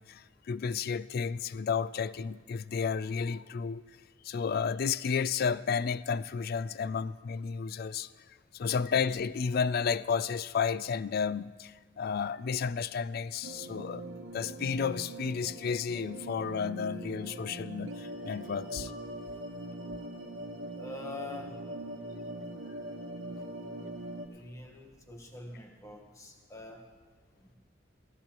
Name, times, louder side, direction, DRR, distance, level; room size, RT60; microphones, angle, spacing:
voice 1, 0.0-3.8 4.2-8.1 8.5-14.0 14.3-18.9, left 6 dB, 50° left, 0.3 m, -32 dB
sound 1, 13.4-24.3, right 1 dB, 75° right, 1.0 m, -42 dB
voice 2, 20.7-21.6 24.3-26.8 27.4-27.5, left 2 dB, 15° left, 1.3 m, -44 dB
17.0 x 15.0 x 3.0 m
head